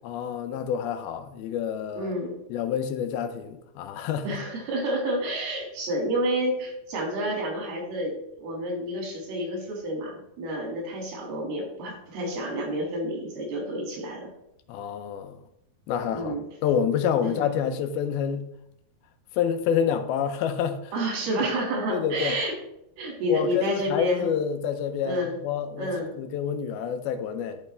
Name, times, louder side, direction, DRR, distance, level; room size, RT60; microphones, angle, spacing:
voice 1, 0.0-2.1 2.5-4.4 14.7-15.4 15.9-16.4 16.6-18.5 19.3-20.9 21.4-21.5 21.9-22.4 23.3-27.6, left 8 dB, 85° left, 2.6 m, -28 dB
voice 2, 2.0-2.3 4.2-14.3 16.1-16.4 17.2-17.4 20.9-22.5 23.0-24.3 25.1-25.4 25.8-26.1, equal, 85° right, 4.0 m, -29 dB
11.5 x 5.3 x 3.3 m
omnidirectional pair, 4.3 m